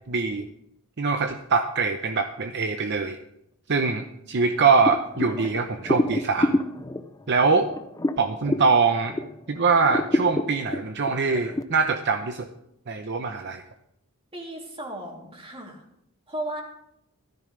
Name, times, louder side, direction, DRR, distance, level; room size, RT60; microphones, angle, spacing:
voice 1, 0.1-0.5 1.0-3.2 3.7-6.6 7.3-7.7 8.2-9.1 9.5-12.5 12.9-13.6, right 4 dB, 55° right, 6 dB, 0.8 m, -23 dB
sound 1, 4.8-9.4 9.8-11.6, left 1 dB, 15° left, 0.5 m, -27 dB
voice 2, 14.3-15.8 16.3-16.6, right 1 dB, 25° right, 0 dB, 3.1 m, -35 dB
16.0 x 14.0 x 3.3 m, 0.78 s
head